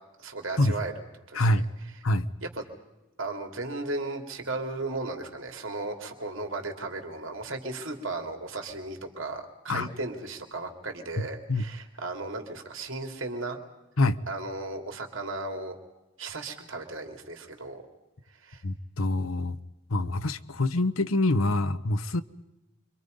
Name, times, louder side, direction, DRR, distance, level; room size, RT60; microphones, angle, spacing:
voice 1, 0.2-0.9 1.3-1.6 2.4-2.6 3.2-13.6 14.3-15.8 16.2-17.8 18.4-18.6, right 2 dB, 75° right, 3.1 m, -35 dB
voice 2, 1.3-1.6 2.0-2.3 9.7-9.9 11.5-11.7 14.0-14.2 18.6-19.6 19.9-22.2, left 2 dB, 85° left, 1.0 m, -25 dB
29.0 x 25.0 x 5.4 m
head